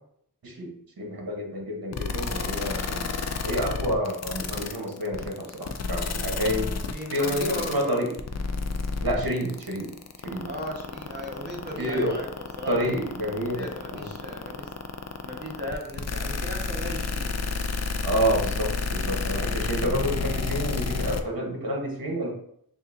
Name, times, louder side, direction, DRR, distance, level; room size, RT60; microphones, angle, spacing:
voice 1, 0.4-3.0 3.4-6.7 7.1-8.1 9.0-9.9 10.2-10.5 11.8-12.2 12.7-14.1 18.0-22.3, equal, 55° right, 0 dB, 1.2 m, -29 dB
sound 1, 1.9-21.2, left 4 dB, 40° left, 0.4 m, -30 dB
voice 2, 6.9-8.0 10.4-12.3 12.6-12.9 13.5-14.7 15.2-17.3 20.3-20.4, equal, 25° right, -3 dB, 1.3 m, -37 dB
6.2 x 2.7 x 2.6 m, 0.72 s
wide cardioid pair, 60°, 41 cm